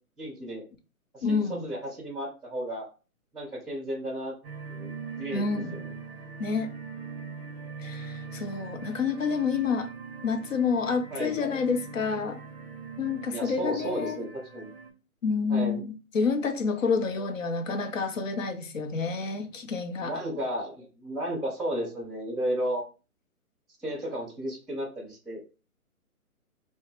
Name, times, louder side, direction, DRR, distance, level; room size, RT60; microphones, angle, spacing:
voice 1, 0.2-0.6 1.1-2.9 3.3-4.3 4.7-5.9 11.1-11.5 13.3-14.3 14.5-14.7 15.5-15.8 20.0-22.8 23.8-25.4, right 1 dB, ahead, 0.4 m, -33 dB
voice 2, 1.2-1.6 5.3-5.8 6.4-6.7 7.8-9.9 10.2-12.4 13.0-14.2 15.2-20.1, left 5 dB, 60° left, 0.6 m, -28 dB
sound 1, 4.4-14.9, right 5 dB, 45° right, 0.6 m, -41 dB
2.8 x 2.1 x 3.1 m
hypercardioid pair, 165°, 44 cm